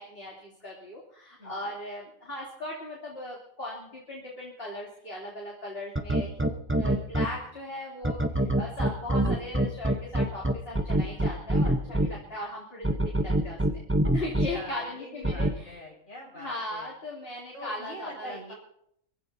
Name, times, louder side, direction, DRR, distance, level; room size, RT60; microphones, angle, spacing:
voice 1, 0.0-13.8 14.1-15.8 16.4-18.5, left 1 dB, 40° left, -4 dB, 3.5 m, -38 dB
voice 2, 1.4-1.7 11.5-12.2 14.2-16.9 17.5-18.5, equal, 65° left, -4 dB, 7.6 m, -44 dB
sound 1, 6.0-7.3 8.0-12.1 12.8-14.5 15.2-15.5, right 1 dB, 10° right, 0.8 m, -24 dB
26.5 x 16.0 x 2.8 m, 0.72 s
omnidirectional pair, 1.5 m